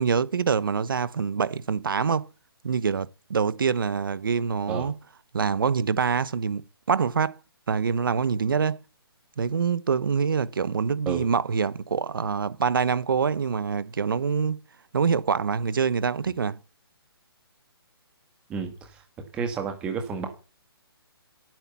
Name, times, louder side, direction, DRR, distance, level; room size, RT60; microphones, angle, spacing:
voice 1, 0.0-2.3 2.6-4.9 5.3-7.4 7.7-8.8 9.4-14.6 14.9-16.6, right 6 dB, 55° right, 1.0 m, -25 dB
voice 2, 18.5-19.0 19.3-20.3, right 6 dB, 5° right, 1.5 m, -31 dB
16.0 x 9.2 x 7.0 m
hypercardioid pair, 175°, 13 cm